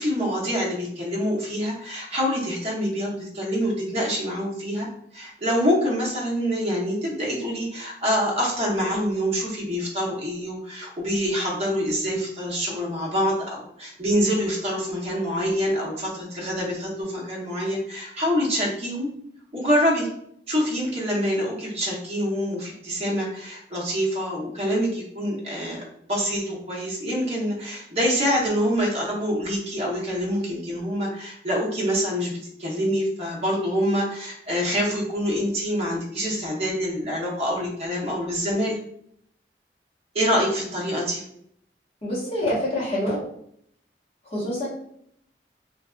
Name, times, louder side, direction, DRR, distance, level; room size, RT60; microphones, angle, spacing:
voice 1, 0.0-4.9 5.1-19.1 19.5-20.1 20.5-25.8 26.1-38.8 40.1-41.2, equal, 35° right, -4 dB, 0.8 m, -26 dB
voice 2, 42.0-43.2 44.2-44.7, left 1 dB, 35° left, -7 dB, 1.2 m, -26 dB
3.2 x 2.5 x 2.3 m, 0.70 s
head